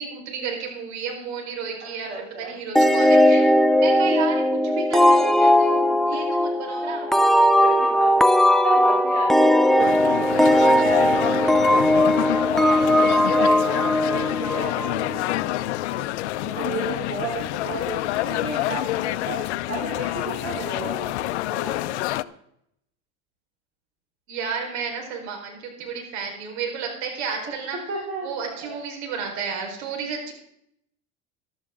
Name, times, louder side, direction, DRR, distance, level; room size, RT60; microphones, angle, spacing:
voice 1, 0.0-3.4 3.8-7.1 24.3-27.8 28.2-30.3, right 6 dB, 75° right, 2 dB, 4.7 m, -32 dB
voice 2, 1.8-2.5 3.7-4.0 6.1-6.4 7.3-12.3 12.6-15.5 15.9-22.2 27.4-27.6 27.9-28.4 28.6-28.8, right 3 dB, 40° right, -3 dB, 3.9 m, -34 dB
sound 1, 2.8-15.2, left 1 dB, ahead, 0.6 m, -18 dB
sound 2, 9.8-22.2, left 16 dB, 85° left, 0.6 m, -27 dB
14.0 x 13.0 x 3.8 m, 0.73 s
supercardioid pair, 95°, 34 cm